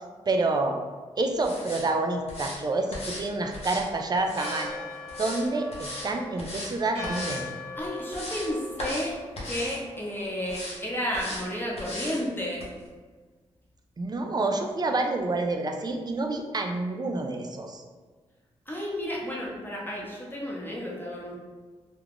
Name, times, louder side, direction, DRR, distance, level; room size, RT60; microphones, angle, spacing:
voice 1, 0.3-0.8 1.2-4.8 5.2-7.5 14.0-17.8, right 2 dB, 35° right, 4 dB, 0.4 m, -28 dB
sound 1, 1.4-1.9 2.3-2.6 2.9-3.2 3.5-4.7 5.1-5.4 5.7-6.1 6.4-6.7 7.0-7.4 7.8-8.5 8.8-9.1 9.4-9.8 10.5-10.8 11.1-11.4 11.8-12.2 12.6-12.7, left 1 dB, 55° left, 0.9 m, -37 dB
Church bell, 4.3-10.6, left 2 dB, 55° right, 0.9 m, -40 dB
voice 2, 7.8-9.2 9.4-12.7 18.7-21.3, equal, 15° left, -4 dB, 0.9 m, -32 dB
2.3 x 2.2 x 3.5 m, 1.4 s
cardioid pair, 55°, 12 cm